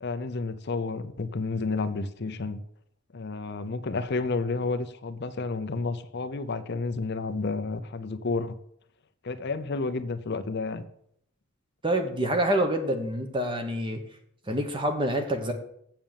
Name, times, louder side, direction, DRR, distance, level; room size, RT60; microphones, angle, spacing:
voice 1, 0.0-2.6 3.1-8.6 9.2-10.8, left 3 dB, 50° left, 11 dB, 0.6 m, -31 dB
voice 2, 11.8-14.0 14.5-15.5, right 1 dB, 20° right, 5 dB, 1.2 m, -27 dB
7.6 x 7.3 x 7.1 m, 0.72 s
head